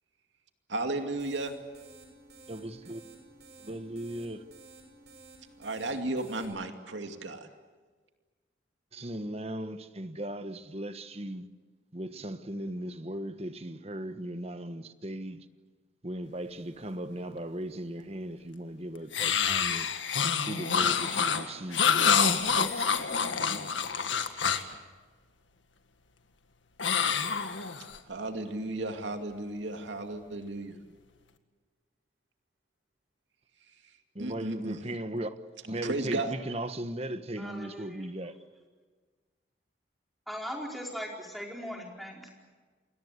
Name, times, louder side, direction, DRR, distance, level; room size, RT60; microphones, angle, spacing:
voice 1, 0.7-1.5 5.6-7.5 28.1-30.8 34.2-34.8 35.8-36.3, right 2 dB, 80° right, 2.5 m, -34 dB
sound 1, 0.9-6.5, right 2 dB, 65° right, 6.7 m, -54 dB
voice 2, 2.5-3.0 3.7-4.4 8.9-11.5 11.9-15.4 16.0-19.9 20.4-23.7 34.1-35.4 35.6-38.3, right 1 dB, 35° right, 1.2 m, -38 dB
sound 2, 19.1-24.7 26.8-28.0, left 6 dB, 85° left, 1.8 m, -27 dB
voice 3, 37.4-38.0 40.3-42.5, equal, ahead, 4.6 m, -39 dB
28.5 x 22.0 x 8.3 m
head